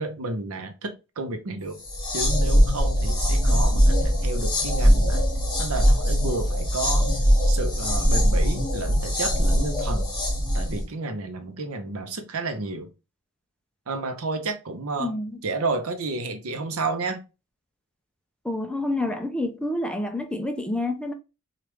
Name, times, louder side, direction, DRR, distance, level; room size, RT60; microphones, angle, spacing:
voice 1, 0.0-1.8 2.1-5.2 5.6-7.1 7.5-10.1 10.5-12.9 13.9-15.1 15.4-17.2, right 3 dB, 70° right, 0.7 m, -31 dB
sound 1, 1.8-10.8, equal, 25° left, 1.3 m, -21 dB
voice 2, 15.0-15.4 18.4-21.1, left 1 dB, 5° left, 0.3 m, -28 dB
3.1 x 2.4 x 3.2 m
head